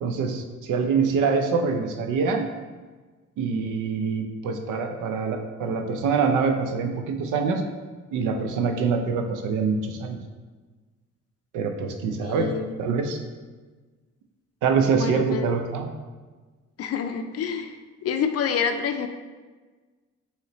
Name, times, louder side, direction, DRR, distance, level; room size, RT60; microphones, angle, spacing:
voice 1, 0.0-2.5 3.4-7.6 8.1-10.2 11.5-12.5 12.8-13.2 14.6-15.9, right 5 dB, 85° right, 5 dB, 0.6 m, -25 dB
voice 2, 12.2-12.8 14.9-15.5 16.8-17.7 18.0-19.1, left 7 dB, 55° left, 7 dB, 0.4 m, -27 dB
5.5 x 3.2 x 3.0 m, 1.3 s
cardioid pair, 90°, 30 cm